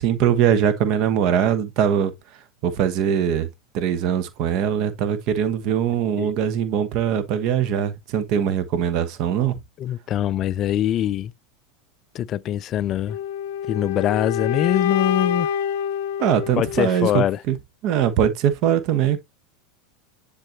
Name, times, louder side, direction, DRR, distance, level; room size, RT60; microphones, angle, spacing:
voice 1, 0.0-2.1 2.6-3.5 3.7-9.6 16.2-17.5 17.8-19.2, right 9 dB, 45° right, 1.1 m, -21 dB
voice 2, 9.8-11.3 12.1-13.2 13.7-15.5 16.6-17.4, left 11 dB, 35° left, 0.4 m, -23 dB
sound 1, 13.1-17.1, left 8 dB, 55° left, 0.7 m, -26 dB
10.5 x 4.1 x 2.8 m
figure-of-eight pair, 80°, 0 cm